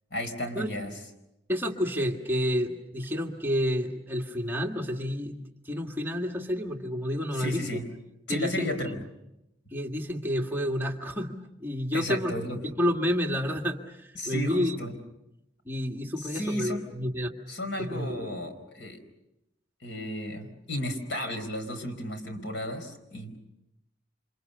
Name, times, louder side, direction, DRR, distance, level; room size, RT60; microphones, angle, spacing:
voice 1, 0.1-1.0 7.3-7.8 8.3-9.0 11.9-12.6 14.2-14.9 16.2-16.9 17.5-19.0 19.8-23.4, left 1 dB, 70° left, 7 dB, 4.8 m, -33 dB
voice 2, 1.5-7.6 8.3-9.0 9.7-14.8 15.7-17.3 17.8-18.2, equal, 10° right, 1 dB, 1.8 m, -30 dB
29.0 x 27.0 x 6.8 m, 0.87 s
head